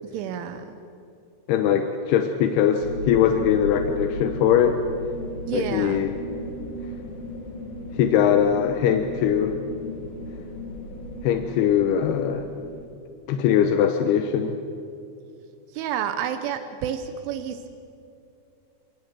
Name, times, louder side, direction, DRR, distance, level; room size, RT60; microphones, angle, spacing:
voice 1, 0.1-0.8 5.5-6.0 15.7-17.7, right 9 dB, 85° right, 9 dB, 3.4 m, -30 dB
voice 2, 1.5-4.8 5.5-6.1 8.0-9.6 11.2-12.4 13.3-14.6, left 9 dB, 75° left, 6 dB, 2.5 m, -21 dB
sound 1, 2.8-12.9, left 1 dB, 50° left, 3.7 m, -36 dB
25.5 x 19.5 x 7.6 m, 2.5 s
omnidirectional pair, 5.5 m